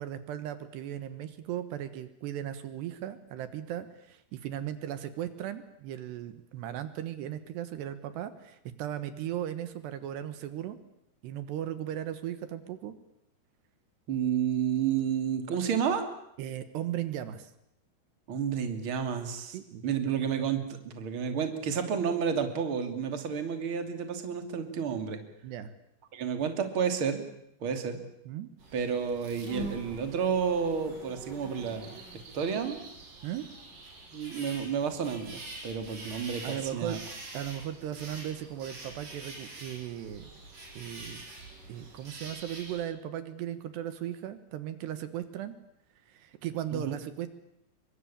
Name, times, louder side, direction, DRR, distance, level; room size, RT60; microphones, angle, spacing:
voice 1, 0.0-10.8 11.2-13.0 16.4-17.5 19.5-19.9 25.4-25.7 28.3-28.5 33.2-33.4 36.4-37.0 37.3-40.3 40.8-41.2 41.7-45.6 46.1-47.3, right 11 dB, 75° right, 11 dB, 3.4 m, -37 dB
voice 2, 14.1-16.0 18.3-19.6 19.8-25.2 26.1-27.2 27.6-28.0 28.7-32.0 32.3-32.8 34.1-37.0 46.7-47.0, right 7 dB, 35° right, 7 dB, 3.0 m, -31 dB
sound 1, 28.6-42.8, right 2 dB, 50° right, 7.6 m, -45 dB
27.5 x 23.5 x 8.7 m, 0.78 s
omnidirectional pair, 5.0 m